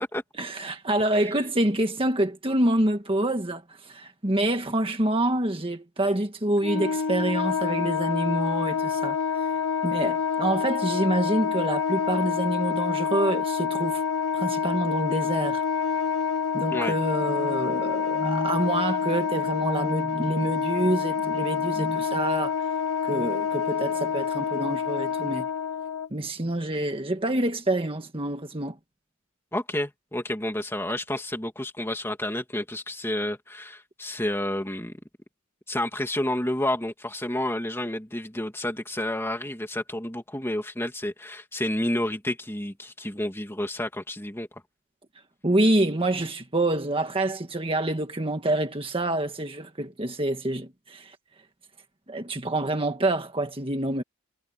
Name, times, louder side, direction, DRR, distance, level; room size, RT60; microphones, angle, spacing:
voice 1, 0.4-9.5 9.8-14.0 14.3-15.6 16.5-22.5 23.0-25.5 26.1-28.8 45.4-51.1 52.1-54.0, right 1 dB, 25° right, 1.6 m, -27 dB
Wind instrument woodwind instrument, 6.6-26.1, left 6 dB, 80° left, 2.2 m, -27 dB
voice 2, 29.5-35.0 35.7-44.5, left 1 dB, 10° left, 2.6 m, -30 dB
head